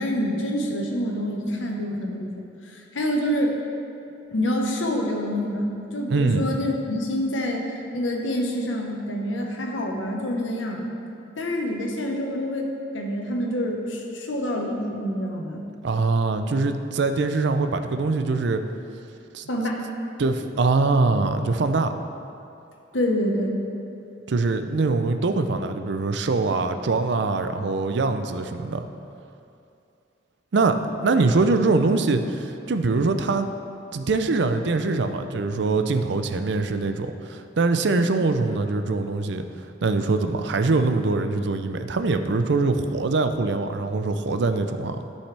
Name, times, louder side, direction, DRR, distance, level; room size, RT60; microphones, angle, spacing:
voice 1, 0.0-2.3 2.6-3.5 4.3-10.8 11.4-12.7 12.9-15.7 19.5-19.8 22.9-23.5, equal, 85° left, 1 dB, 1.1 m, -27 dB
voice 2, 6.1-6.4 15.8-18.6 19.3-19.5 20.2-21.9 24.3-28.9 30.5-33.5 33.9-39.4 39.8-45.0, right 3 dB, 65° right, 8 dB, 0.5 m, -23 dB
13.0 x 5.5 x 3.4 m, 2.6 s
head